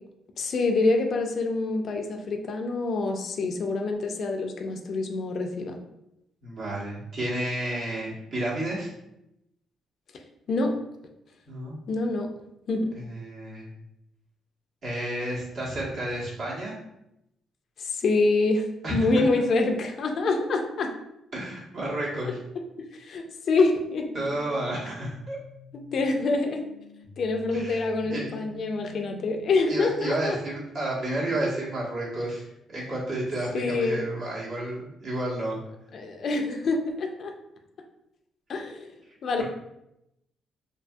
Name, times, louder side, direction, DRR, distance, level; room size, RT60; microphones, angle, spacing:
voice 1, 0.4-5.8 10.5-10.8 11.9-12.3 12.7-12.9 17.8-18.7 18.9-20.9 22.9-24.1 25.7-26.6 27.2-30.4 33.5-34.1 35.9-37.3 38.5-39.0 39.2-39.4, left 3 dB, 60° left, 3 dB, 0.3 m, -26 dB
voice 2, 6.4-8.9 11.5-11.7 12.9-13.7 14.8-16.8 18.8-19.1 21.3-22.4 24.1-25.4 27.5-28.2 29.7-32.4 32.7-35.6, right 1 dB, 60° right, -6 dB, 1.1 m, -31 dB
sound 1, 24.0-30.0, equal, 90° right, 1.1 m, -48 dB
2.7 x 2.5 x 2.3 m, 0.84 s
cardioid pair, 90°, 0 cm